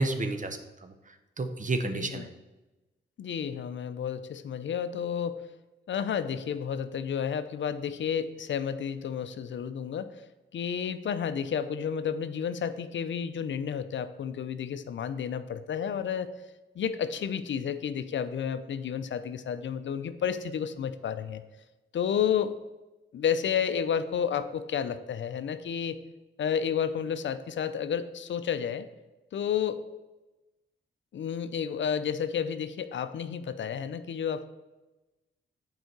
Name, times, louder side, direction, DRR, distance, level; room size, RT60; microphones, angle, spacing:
voice 1, 0.0-2.3, right 2 dB, 40° right, 8 dB, 0.9 m, -31 dB
voice 2, 1.8-2.3 3.2-5.4 5.9-10.2 10.5-16.3 16.8-21.4 21.9-22.6 23.1-26.0 26.4-28.9 29.3-29.9 31.1-34.5, left 8 dB, 65° left, 12 dB, 0.5 m, -31 dB
7.9 x 4.8 x 4.6 m, 1.1 s
cardioid pair, 55°, 21 cm